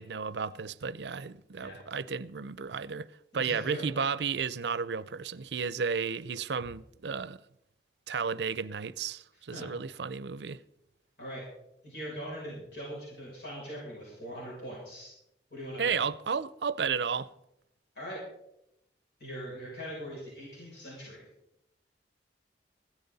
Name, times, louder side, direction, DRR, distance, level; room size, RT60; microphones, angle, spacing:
voice 1, 0.0-3.1 3.3-7.4 8.1-10.6 15.8-17.3, right 6 dB, 75° right, 0.5 m, -33 dB
voice 2, 3.3-3.8 9.5-9.7 11.2-11.4 11.8-15.1 15.5-16.0 17.9-18.2 19.2-21.3, equal, 65° left, 6.7 m, -41 dB
16.0 x 13.5 x 4.1 m
head